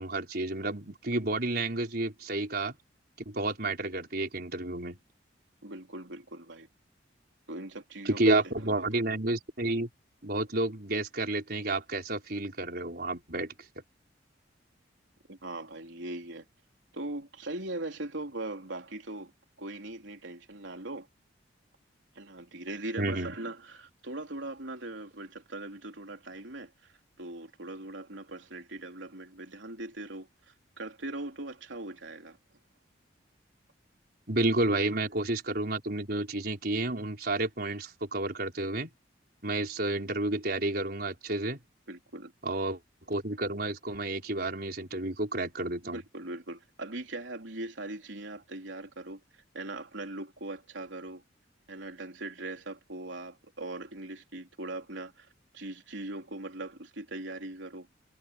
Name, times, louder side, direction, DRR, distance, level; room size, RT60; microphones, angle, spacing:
voice 1, 0.0-2.7 3.2-5.0 8.0-9.9 10.2-13.5 23.0-23.4 34.3-38.9 39.4-41.6 42.4-42.8 43.1-46.0, right 2 dB, 55° right, 5.0 m, -30 dB
voice 2, 5.6-6.7 7.5-8.9 15.3-16.5 16.9-19.3 19.6-21.1 22.2-32.4 41.9-42.3 45.9-51.2 51.7-55.3 55.5-57.9, right 2 dB, 90° right, 3.6 m, -40 dB
head